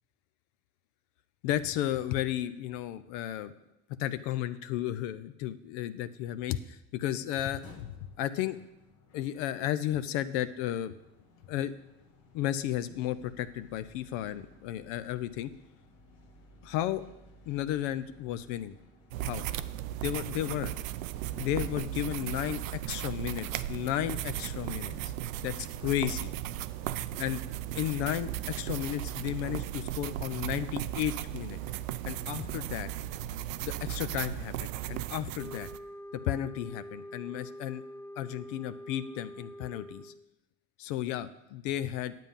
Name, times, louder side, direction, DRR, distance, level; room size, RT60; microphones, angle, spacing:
voice 1, 1.4-3.5 4.0-8.6 9.1-10.9 11.5-11.7 12.3-15.5 16.6-17.0 17.5-18.7 19.2-19.5 20.0-20.7 21.4-25.1 25.4-25.5 25.8-26.3 27.2-27.4 27.7-31.6 32.0-32.9 33.6-35.7 36.3-37.8 38.2-40.1 40.8-42.2, left 12 dB, 70° left, 12 dB, 0.6 m, -33 dB
sound 1, 7.4-25.5, left 1 dB, 90° left, 1.7 m, -58 dB
sound 2, 19.1-35.8, right 13 dB, 90° right, 0.5 m, -36 dB
sound 3, 35.4-40.3, equal, 5° left, 0.5 m, -45 dB
9.3 x 7.5 x 5.4 m, 0.91 s
hypercardioid pair, 75°, 39 cm